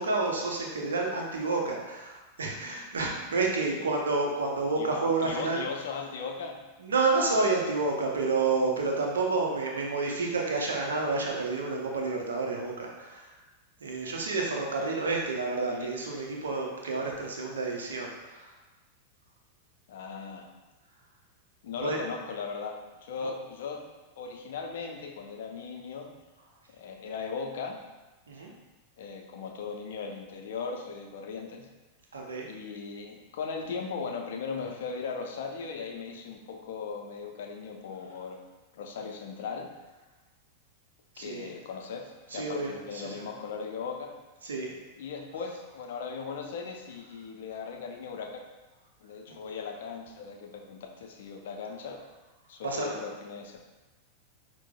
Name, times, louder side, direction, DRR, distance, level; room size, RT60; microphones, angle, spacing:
voice 1, 0.0-5.6 6.8-13.3 13.8-18.5 21.8-22.0 28.3-28.5 32.1-32.5 41.2-41.5 42.3-43.2 44.4-44.7 52.6-53.0, right 3 dB, 70° right, 0 dB, 0.6 m, -29 dB
voice 2, 5.2-6.6 14.8-15.0 15.7-15.9 19.9-20.5 21.6-23.8 24.2-26.1 26.7-27.8 29.0-31.7 32.5-38.4 38.7-39.7 41.2-44.1 45.0-48.4 49.0-52.0 52.5-53.6, left 5 dB, 55° left, 2 dB, 0.5 m, -38 dB
5.8 x 2.0 x 2.3 m, 1.1 s
figure-of-eight pair, 90°, 0 cm